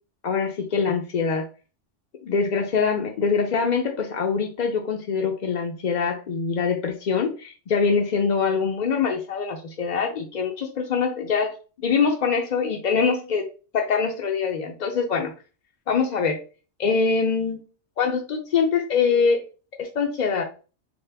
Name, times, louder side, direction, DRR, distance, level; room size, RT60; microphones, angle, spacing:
voice 1, 0.2-1.4 2.2-11.5 11.8-13.4 13.7-15.3 15.9-16.4 16.8-17.6 18.0-19.4 19.8-20.4, left 5 dB, 55° left, 2 dB, 0.5 m, -24 dB
4.3 x 2.1 x 3.3 m, 0.35 s
omnidirectional pair, 1.2 m